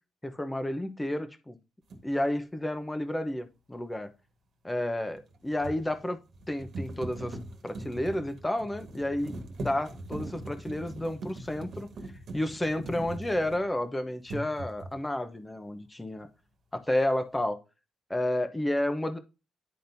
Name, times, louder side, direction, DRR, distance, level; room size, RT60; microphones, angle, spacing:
voice 1, 0.2-1.6 2.0-4.1 4.6-6.2 6.5-7.4 7.6-11.9 12.3-16.3 16.7-17.6 18.1-19.2, left 1 dB, 10° left, 0.9 m, -31 dB
sound 1, 1.9-2.1 5.1-13.9 14.2-15.0, right 2 dB, 60° right, 1.5 m, -41 dB
10.5 x 3.9 x 2.7 m
cardioid pair, 90°, 0 cm